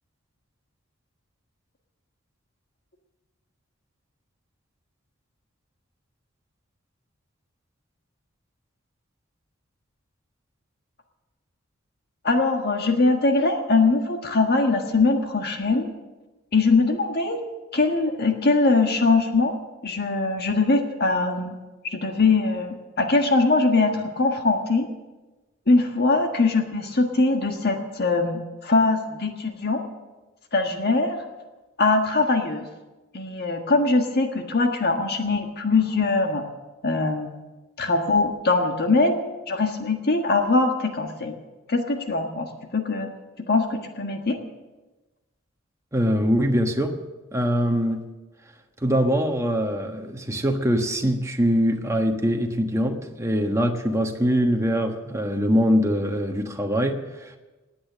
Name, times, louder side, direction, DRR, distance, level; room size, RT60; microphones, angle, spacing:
voice 1, 12.2-15.9 16.5-17.4 17.7-19.5 19.8-21.5 21.9-24.9 25.7-29.8 30.5-31.2 31.8-32.7 33.1-36.4 36.8-37.3 37.8-39.2 39.5-41.4 41.7-43.1 43.5-44.4, left 3 dB, 50° left, 4 dB, 1.5 m, -22 dB
voice 2, 45.9-46.9 47.3-48.1 48.8-57.4, equal, 15° right, 3 dB, 1.3 m, -23 dB
19.0 x 8.7 x 7.4 m, 1.2 s
head